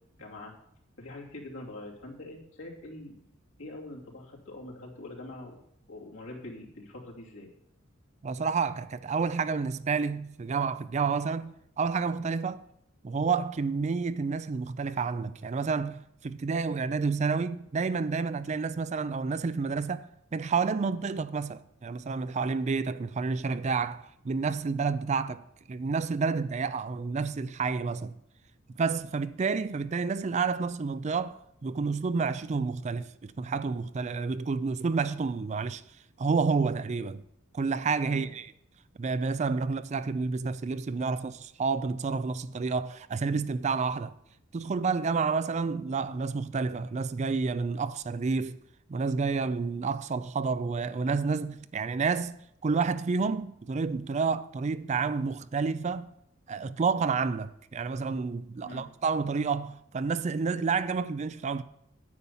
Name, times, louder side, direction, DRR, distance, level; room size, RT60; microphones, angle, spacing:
voice 1, 0.2-0.5 1.0-3.1 3.6-5.5 5.9-7.5 38.1-38.3 58.6-58.9, left 2 dB, 80° left, 2.9 m, -44 dB
voice 2, 8.2-12.6 13.0-20.1 20.3-25.4 25.7-28.2 28.8-35.8 36.2-37.2 37.5-38.5 39.0-44.1 44.5-48.6 48.9-56.1 56.5-61.6, right 4 dB, 35° right, 0.4 m, -29 dB
9.5 x 8.5 x 5.5 m
head